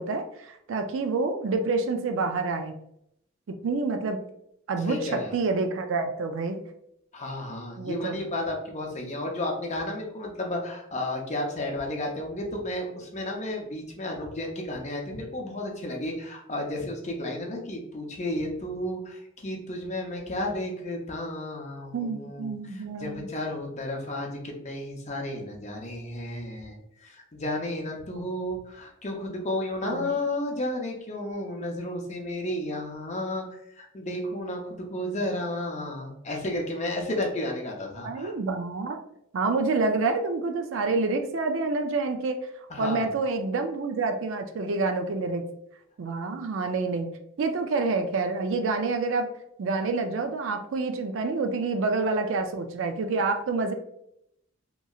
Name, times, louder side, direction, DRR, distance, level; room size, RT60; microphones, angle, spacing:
voice 1, 0.0-2.7 3.5-4.2 4.7-6.6 7.8-8.2 21.9-23.3 28.1-28.3 29.8-30.1 38.0-39.0 39.3-42.4 42.8-45.4 46.0-47.1 47.4-49.3 49.6-53.7, right 3 dB, 65° right, 6 dB, 0.4 m, -28 dB
voice 2, 4.8-5.4 7.1-38.3 42.7-43.1, left 1 dB, 35° left, 1 dB, 0.6 m, -32 dB
3.0 x 2.7 x 2.3 m, 0.75 s
head